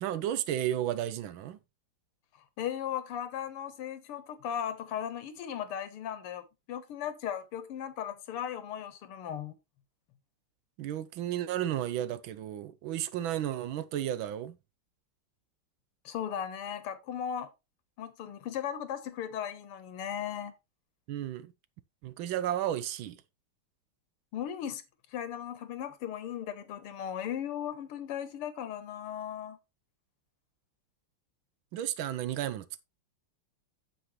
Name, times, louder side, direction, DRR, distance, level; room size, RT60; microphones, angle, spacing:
voice 1, 0.0-1.6 10.8-14.6 21.1-21.5 22.0-23.2 31.7-32.8, right 11 dB, 75° right, 1.3 m, -33 dB
voice 2, 2.6-9.6 16.1-17.5 18.0-20.5 24.3-24.8 25.1-29.6, left 9 dB, 90° left, 2.0 m, -37 dB
8.7 x 7.6 x 3.0 m
omnidirectional pair, 2.4 m